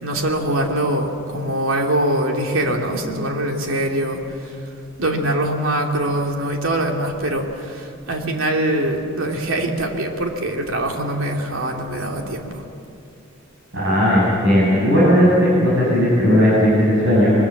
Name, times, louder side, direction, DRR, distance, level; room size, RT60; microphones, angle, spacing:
voice 1, 0.0-4.6 5.0-12.6, right 1 dB, 80° right, 1 dB, 2.7 m, -23 dB
voice 2, 13.7-17.3, equal, 60° right, -7 dB, 6.9 m, -16 dB
23.0 x 21.5 x 7.2 m, 2.6 s
head